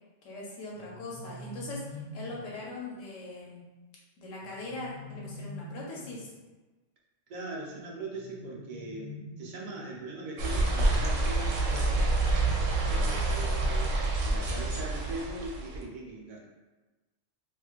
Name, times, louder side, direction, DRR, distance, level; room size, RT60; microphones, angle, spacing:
voice 1, 0.2-3.7 4.2-6.3, left 2 dB, 75° left, -4 dB, 1.0 m, -41 dB
sound 1, 0.7-2.6 4.4-6.3 8.1-10.1, left 2 dB, 60° left, 0.6 m, -45 dB
voice 2, 7.3-12.1 12.9-13.9 14.2-16.4, right 2 dB, 55° right, -2 dB, 0.5 m, -40 dB
sound 2, 10.4-15.8, right 2 dB, 80° right, 0.9 m, -27 dB
3.0 x 2.5 x 2.3 m, 1.2 s
omnidirectional pair, 1.3 m